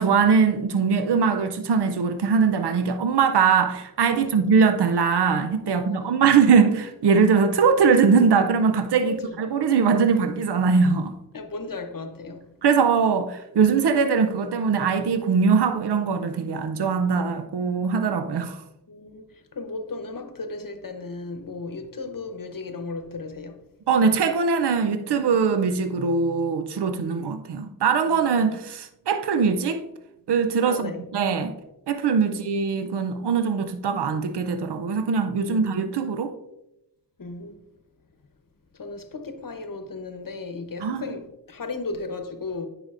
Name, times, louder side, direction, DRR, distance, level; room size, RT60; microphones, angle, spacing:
voice 1, 0.0-11.1 12.6-18.6 23.9-29.9 30.3-31.5 31.9-36.3 40.8-41.1, right 5 dB, 85° right, 0.6 m, -21 dB
voice 2, 5.6-6.2 9.0-9.4 11.3-12.5 18.9-23.6 28.0-28.6 30.6-31.0 32.2-32.5 35.4-35.8 37.2-37.6 38.7-42.7, left 3 dB, 55° left, 0.9 m, -36 dB
9.4 x 5.0 x 2.5 m
cardioid pair, 45°, 39 cm